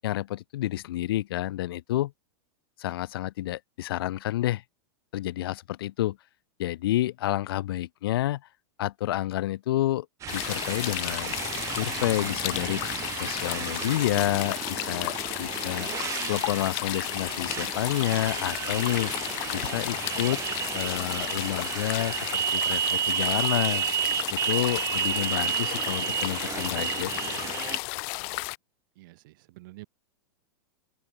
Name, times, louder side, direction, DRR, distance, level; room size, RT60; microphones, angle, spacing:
voice 1, 0.0-2.1 2.8-4.6 5.1-6.2 6.6-8.4 8.8-10.1 10.3-11.3 11.7-12.8 13.2-15.9 16.3-19.1 19.5-20.4 20.7-23.8 24.3-27.1, left 14 dB, 70° left, 1.3 m, -29 dB
Motorcycle, 10.2-27.8, right 10 dB, 25° right, 1.1 m, -32 dB
sound 1, 10.3-28.6, left 40 dB or more, 45° left, 0.9 m, -33 dB
voice 2, 29.0-29.9, right 20 dB, 60° right, 6.7 m, -48 dB
supercardioid pair, 145°, 13 cm